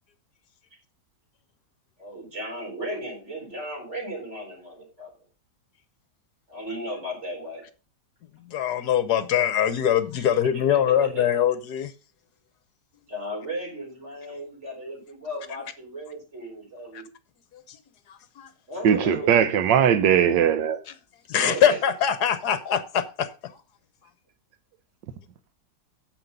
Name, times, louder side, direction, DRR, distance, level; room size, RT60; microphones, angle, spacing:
voice 1, 2.0-5.1 6.5-7.6 10.2-10.3 10.6-11.3 13.1-17.0 18.7-19.7 21.4-21.8, right 1 dB, 40° right, 4.7 m, -35 dB
voice 2, 8.4-11.9 16.9-17.0 17.5-17.8 18.1-18.5 20.9-21.0 21.3-23.6, left 9 dB, 70° left, 1.3 m, -23 dB
voice 3, 18.8-20.8, right 8 dB, 85° right, 1.5 m, -19 dB
9.5 x 7.0 x 5.3 m
omnidirectional pair, 1.9 m